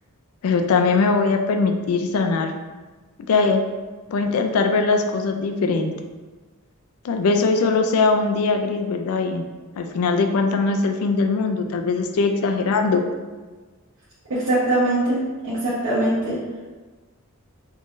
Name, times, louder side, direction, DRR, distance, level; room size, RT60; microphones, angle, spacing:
voice 1, 0.4-2.5 3.3-3.6 4.1-5.9 7.0-9.4 9.8-13.0, left 4 dB, 80° left, 5 dB, 0.3 m, -21 dB
voice 2, 14.3-15.2 15.5-16.4, right 1 dB, 70° right, -10 dB, 1.1 m, -21 dB
3.7 x 3.1 x 2.5 m, 1.3 s
head